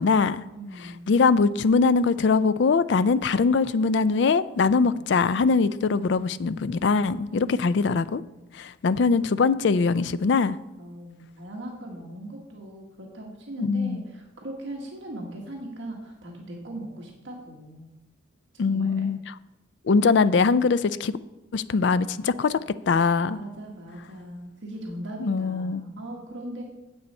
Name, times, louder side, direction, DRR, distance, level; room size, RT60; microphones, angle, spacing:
voice 1, 0.0-0.4 0.8-8.2 8.5-10.6 13.6-14.0 18.6-19.2 19.8-21.2 21.5-22.6 22.9-23.4 25.2-25.8, left 4 dB, 60° left, 15 dB, 0.4 m, -22 dB
voice 2, 0.5-1.1 4.8-5.1 7.4-7.9 10.8-17.9 18.7-19.1 23.2-26.6, right 1 dB, 65° right, -1 dB, 1.5 m, -39 dB
9.6 x 8.0 x 4.3 m, 0.98 s
head